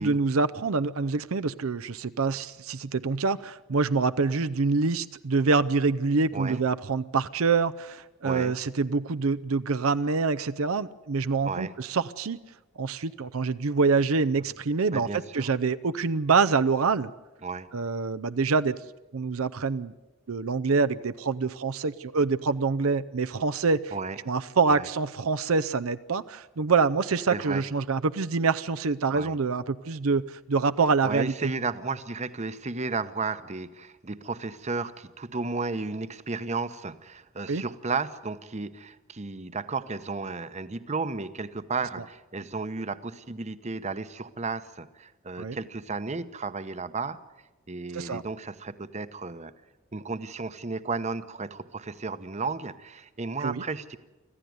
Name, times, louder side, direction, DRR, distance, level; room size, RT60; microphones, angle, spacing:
voice 1, 0.0-12.4 12.8-15.1 15.3-17.1 17.7-18.7 19.1-19.9 20.3-23.9 24.3-31.5 37.5-37.6 45.4-45.6 47.9-48.2 53.4-53.6, right 4 dB, 80° right, 12 dB, 0.6 m, -26 dB
voice 2, 6.3-6.6 8.2-8.5 11.4-11.7 14.9-15.5 17.4-17.7 23.9-24.2 24.7-24.9 27.3-27.6 29.1-29.3 31.0-47.2 47.7-49.5 49.9-54.0, right 4 dB, 30° right, 12 dB, 0.9 m, -33 dB
25.5 x 15.0 x 9.5 m, 1.1 s
head